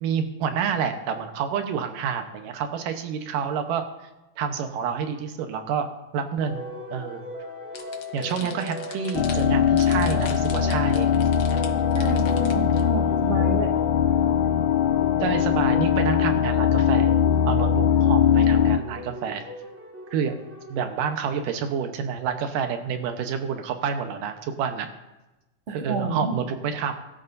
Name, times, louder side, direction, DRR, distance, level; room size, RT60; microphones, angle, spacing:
voice 1, 0.0-3.9 4.4-7.2 8.1-11.1 15.2-17.2 17.5-19.4 20.1-20.4 20.7-24.9 25.7-26.9, right 7 dB, 90° right, 6 dB, 2.7 m, -28 dB
sound 1, 6.5-20.8, left 1 dB, 5° right, 1.0 m, -39 dB
sound 2, 7.7-12.8, left 6 dB, 55° left, 1.8 m, -41 dB
sound 3, 9.1-18.8, left 8 dB, 75° left, 1.7 m, -21 dB
voice 2, 11.9-13.7 25.8-26.3, right 3 dB, 25° right, -3 dB, 2.3 m, -29 dB
23.0 x 12.5 x 2.6 m, 1.0 s
omnidirectional pair, 3.7 m